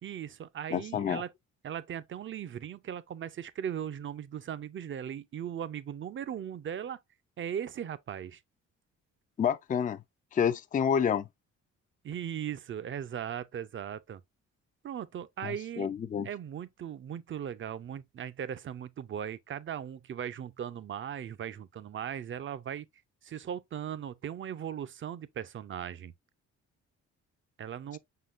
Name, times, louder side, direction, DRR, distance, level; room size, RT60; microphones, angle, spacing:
voice 1, 0.0-1.3 1.6-7.0 7.4-8.4 12.0-14.2 14.8-15.9 16.2-22.9 23.2-26.1 27.6-28.0, right 9 dB, 40° right, 0.6 m, -38 dB
voice 2, 0.7-1.2 9.4-10.0 10.3-11.3 15.4-16.3, left 7 dB, 30° left, 0.4 m, -29 dB
5.6 x 3.9 x 2.4 m
cardioid pair, 90°, 30 cm